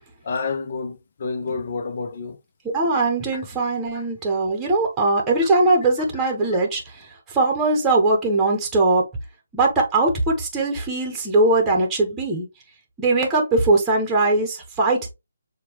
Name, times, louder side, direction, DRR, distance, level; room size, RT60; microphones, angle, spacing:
voice 1, 0.2-2.4 3.3-3.4, left 4 dB, 45° left, 0.8 m, -29 dB
voice 2, 2.6-9.1 9.5-12.5 13.0-15.1, right 2 dB, 10° right, 1.0 m, -20 dB
6.6 x 2.4 x 2.9 m
hypercardioid pair, 165°, 0 cm